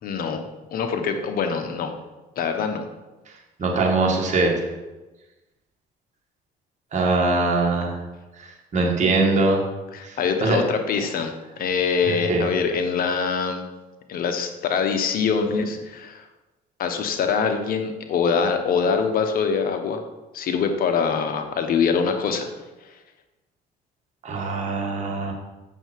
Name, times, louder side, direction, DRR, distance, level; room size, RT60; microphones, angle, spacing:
voice 1, 0.0-1.9 2.4-2.9 9.9-13.7 14.1-16.3 16.8-20.0 20.3-22.5 22.8-23.0, left 5 dB, 60° left, 6 dB, 1.0 m, -24 dB
voice 2, 3.6-4.5 6.9-8.0 8.7-9.6 10.0-10.2 10.4-10.6 12.1-12.4 24.2-25.3, right 3 dB, 45° right, 0 dB, 2.1 m, -22 dB
7.8 x 6.7 x 4.6 m, 1.1 s
cardioid pair, 110°, 17 cm